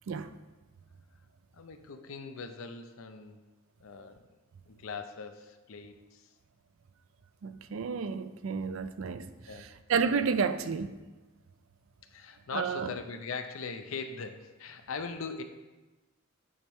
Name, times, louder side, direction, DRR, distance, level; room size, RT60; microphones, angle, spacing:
voice 1, 1.5-3.4 3.8-4.3 4.7-6.3 9.5-9.7 12.1-15.4, left 4 dB, 70° left, 0.5 m, -40 dB
voice 2, 7.4-9.3 9.9-10.9 12.5-12.9, right 5 dB, 70° right, 0.4 m, -30 dB
8.6 x 3.5 x 4.4 m
head